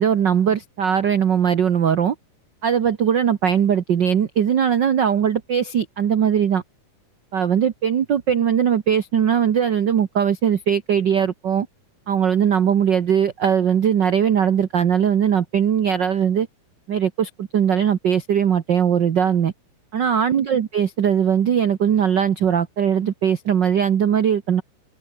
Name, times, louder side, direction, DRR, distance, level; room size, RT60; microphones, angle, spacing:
voice 1, 0.0-2.1 2.6-6.6 7.3-11.7 12.1-16.5 16.9-19.5 19.9-24.6, right 8 dB, 70° right, 1.0 m, -20 dB
omnidirectional pair, 3.8 m